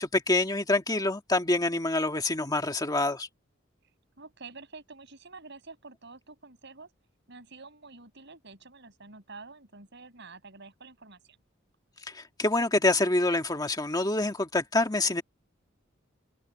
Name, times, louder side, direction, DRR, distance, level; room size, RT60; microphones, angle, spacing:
voice 1, 0.0-3.3 12.1-15.2, left 2 dB, 20° left, 1.8 m, -26 dB
voice 2, 4.2-6.9 7.3-11.4, right 3 dB, 65° right, 6.9 m, -48 dB
head